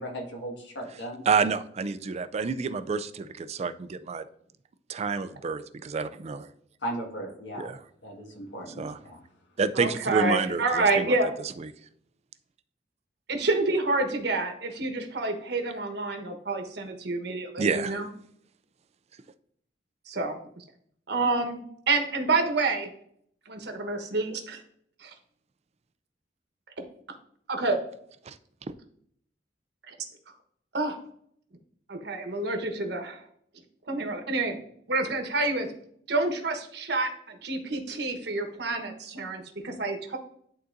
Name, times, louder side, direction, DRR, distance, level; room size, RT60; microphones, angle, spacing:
voice 1, 0.0-1.2 6.8-7.7 8.0-9.2, right 1 dB, 85° left, 1 dB, 1.8 m, -37 dB
voice 2, 1.3-4.2 4.9-6.5 7.6-7.8 8.8-9.0 9.6-11.2 11.6-11.7 17.6-18.0 28.3-28.4 28.7-28.8, right 5 dB, 35° right, 12 dB, 0.4 m, -29 dB
voice 3, 9.7-11.3 13.3-18.1 20.1-20.6 21.1-22.9 23.5-24.6 25.0-25.1 27.5-27.8 29.9-30.0 30.7-31.0 31.9-33.2 33.9-34.6 34.9-35.7 36.1-40.2, right 3 dB, 65° right, 5 dB, 1.2 m, -28 dB
11.0 x 3.9 x 2.6 m, 0.66 s
head